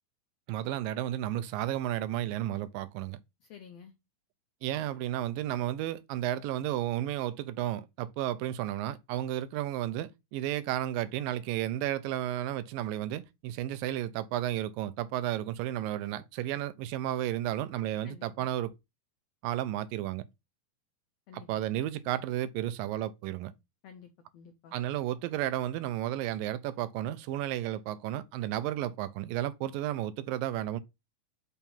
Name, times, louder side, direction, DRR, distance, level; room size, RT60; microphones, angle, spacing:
voice 1, 0.5-3.2 4.6-18.7 19.4-20.2 21.3-23.5 24.7-30.8, right 13 dB, 90° right, 2.4 m, -33 dB
voice 2, 3.5-3.9 18.0-18.5 21.3-21.5 23.8-24.7, left 7 dB, 90° left, 1.4 m, -51 dB
5.9 x 4.4 x 5.4 m
omnidirectional pair, 4.0 m